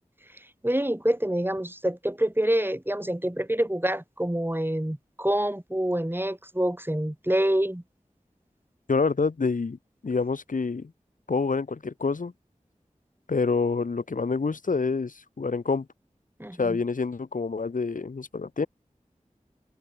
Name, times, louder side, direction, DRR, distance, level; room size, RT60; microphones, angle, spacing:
voice 1, 0.6-7.8 16.4-16.8, right 1 dB, 15° right, 6.2 m, -26 dB
voice 2, 8.9-9.8 10.0-10.9 11.3-12.3 13.3-15.9 16.6-18.7, left 4 dB, 85° left, 1.1 m, -27 dB
open air
wide cardioid pair, 40°, 13 cm